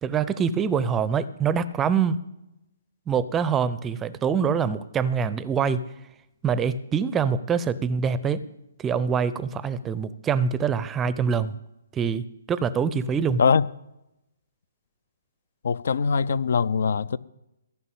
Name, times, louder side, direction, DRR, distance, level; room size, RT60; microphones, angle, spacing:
voice 1, 0.0-2.2 3.1-5.8 6.4-8.4 8.8-11.6 11.9-13.4, right 6 dB, 15° right, 0.5 m, -25 dB
voice 2, 15.6-17.2, left 5 dB, 55° left, 0.4 m, -22 dB
15.0 x 5.7 x 8.6 m
figure-of-eight pair, 130°, 0 cm